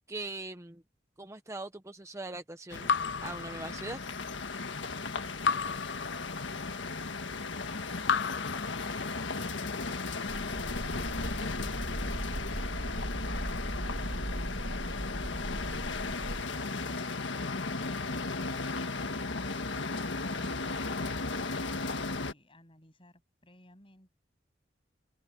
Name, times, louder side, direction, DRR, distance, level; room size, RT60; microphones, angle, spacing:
voice 1, 0.1-0.8 1.2-2.9 3.2-4.0 20.4-20.5, right 2 dB, 15° right, 0.8 m, -41 dB
sound 1, 2.7-22.3, left 3 dB, 85° left, 1.6 m, -36 dB
Raindrop / Drip, 2.9-4.3 5.4-6.8 8.0-9.4, left 6 dB, 70° left, 0.5 m, -33 dB
voice 2, 4.9-5.0, left 1 dB, 30° left, 7.7 m, -60 dB
sound 2, 10.3-16.4, right 1 dB, 30° right, 1.1 m, -38 dB
head